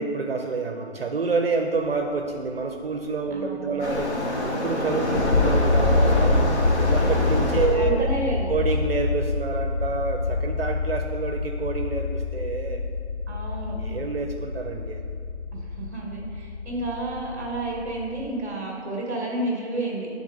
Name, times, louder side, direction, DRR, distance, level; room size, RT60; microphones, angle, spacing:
voice 1, 0.0-6.5 6.7-8.1 8.5-12.8 13.8-15.0, right 4 dB, 60° right, 4 dB, 0.5 m, -28 dB
voice 2, 3.3-4.0 7.1-7.3 7.7-8.5 13.3-13.8 15.5-20.1, right 2 dB, 15° right, -2 dB, 0.9 m, -31 dB
Waves surf, 3.8-7.8, left 1 dB, 75° left, 1.3 m, -26 dB
sound 1, 5.1-18.3, left 3 dB, 50° left, 0.5 m, -26 dB
8.2 x 3.5 x 3.8 m, 2.3 s
hypercardioid pair, 175°, 34 cm